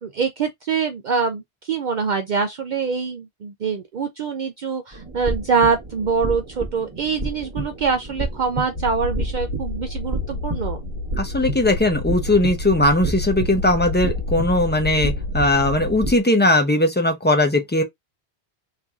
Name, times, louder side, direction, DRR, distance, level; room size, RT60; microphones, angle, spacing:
voice 1, 0.0-10.8, right 5 dB, 55° right, 0.6 m, -24 dB
sound 1, 4.9-16.2, right 1 dB, 30° right, 0.9 m, -31 dB
sound 2, 8.7-16.0, left 2 dB, 75° left, 1.0 m, -29 dB
voice 2, 11.2-17.8, left 1 dB, 10° left, 0.6 m, -19 dB
3.1 x 2.6 x 3.5 m
omnidirectional pair, 1.1 m